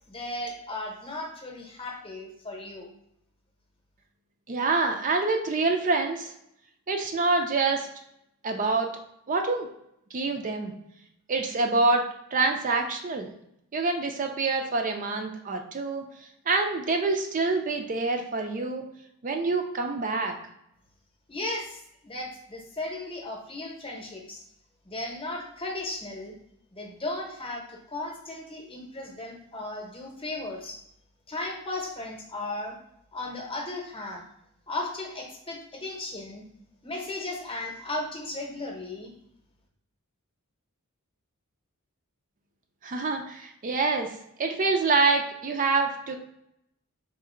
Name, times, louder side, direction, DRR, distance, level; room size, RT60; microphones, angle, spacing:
voice 1, 0.1-2.9 21.3-24.4 24.8-26.3 26.7-30.8 31.3-32.8 33.1-34.2 34.7-36.4 36.8-39.1, left 2 dB, 25° left, 0 dB, 0.9 m, -36 dB
voice 2, 4.5-6.3 6.9-7.9 8.4-8.9 9.3-9.7 10.1-10.7 11.3-12.1 12.3-13.3 13.7-16.0 16.5-18.8 19.2-20.3 42.8-44.1 44.4-46.2, right 3 dB, 35° right, 3 dB, 0.5 m, -26 dB
3.7 x 3.0 x 4.3 m, 0.76 s
head